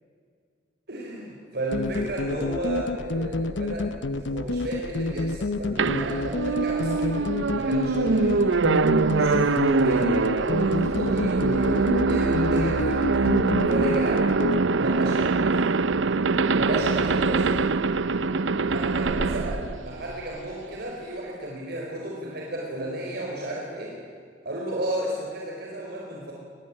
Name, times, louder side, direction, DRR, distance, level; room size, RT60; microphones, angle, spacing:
voice 1, 0.9-8.6 9.1-13.0 13.7-14.3 14.8-15.4 16.5-17.6 18.6-24.0 24.4-26.3, right 1 dB, 60° right, -2 dB, 4.6 m, -33 dB
sound 1, 1.7-14.6, left 2 dB, 80° left, 0.8 m, -29 dB
sound 2, 5.8-20.5, right 3 dB, 85° right, 0.7 m, -23 dB
23.5 x 21.0 x 10.0 m, 2.2 s
head